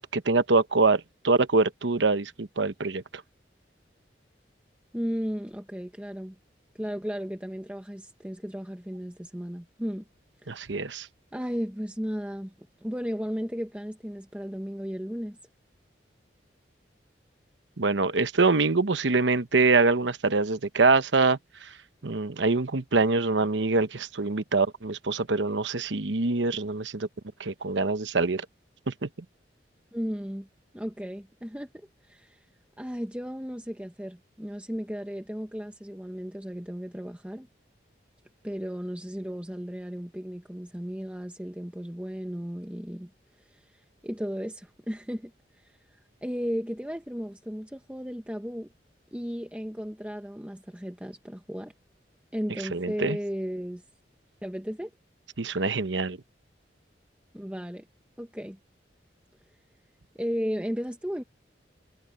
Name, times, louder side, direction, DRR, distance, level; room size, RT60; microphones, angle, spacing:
voice 1, 0.1-3.0 10.5-11.1 17.8-21.7 22.0-27.1 27.4-28.4 28.9-29.1 52.7-53.2 55.4-56.2, right 3 dB, 90° right, 1.0 m, -24 dB
voice 2, 4.9-6.3 6.7-10.0 10.4-10.5 11.3-12.5 12.8-15.4 29.9-30.5 30.7-32.4 32.8-37.5 38.4-43.1 43.4-43.7 44.0-48.7 49.1-51.7 52.3-53.8 54.4-54.9 57.3-57.8 58.2-58.6 60.1-61.2, equal, 5° right, 1.1 m, -35 dB
head